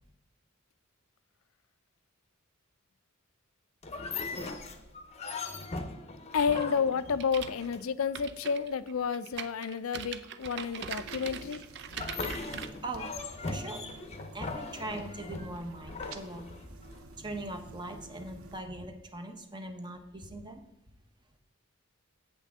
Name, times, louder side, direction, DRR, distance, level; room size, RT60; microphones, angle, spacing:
sound 1, 3.8-8.1 11.9-17.0, left 3 dB, 30° left, 0.7 m, -39 dB
voice 1, 6.3-11.6, left 6 dB, 75° left, 15 dB, 0.4 m, -30 dB
sound 2, 6.3-12.7, right 8 dB, 55° right, 0.5 m, -42 dB
sound 3, 10.4-18.6, right 3 dB, 80° right, 0.8 m, -51 dB
voice 2, 13.5-13.9 14.3-16.5 17.2-20.6, right 2 dB, 20° right, 6 dB, 0.8 m, -40 dB
8.3 x 8.3 x 3.6 m, 0.91 s
head